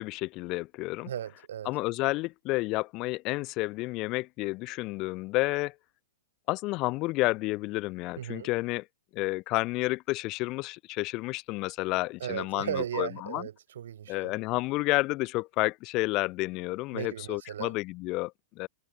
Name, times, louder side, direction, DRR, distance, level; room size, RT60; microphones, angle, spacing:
voice 1, 0.0-1.1 1.6-5.7 6.5-8.9 9.1-13.5 14.1-18.7, left 21 dB, 35° left, 0.8 m, -30 dB
voice 2, 1.1-1.7 8.2-8.5 12.2-14.3 16.9-17.7, right 10 dB, 75° right, 3.6 m, -36 dB
hypercardioid pair, 140°, 0 cm